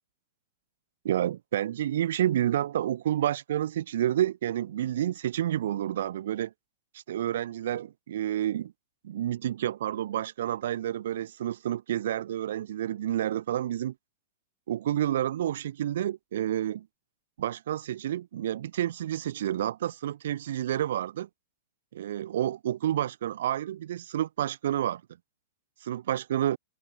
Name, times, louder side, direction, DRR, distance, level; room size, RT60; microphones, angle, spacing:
voice 1, 1.0-6.5 6.9-8.7 9.0-13.9 14.7-16.9 17.4-21.3 21.9-25.0 25.8-26.6, right 11 dB, 65° right, 3.2 m, -29 dB
hypercardioid pair, 105°, 0 cm